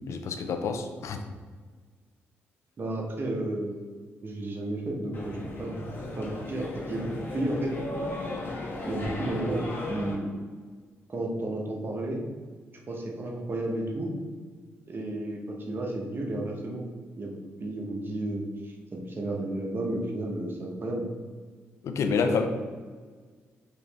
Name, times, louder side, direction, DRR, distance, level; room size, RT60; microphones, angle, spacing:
voice 1, 0.1-1.2 21.8-22.5, left 5 dB, 70° left, 6 dB, 0.5 m, -28 dB
voice 2, 2.8-3.8 4.2-5.9 6.2-7.7 8.8-10.3 11.1-12.2 12.9-14.1 14.9-16.9 17.2-21.0 22.2-22.5, right 1 dB, 45° right, 0 dB, 1.0 m, -32 dB
sound 1, 5.1-10.1, left 2 dB, 45° left, 1.4 m, -36 dB
4.7 x 3.0 x 3.4 m, 1.5 s
cardioid pair, 65°, 5 cm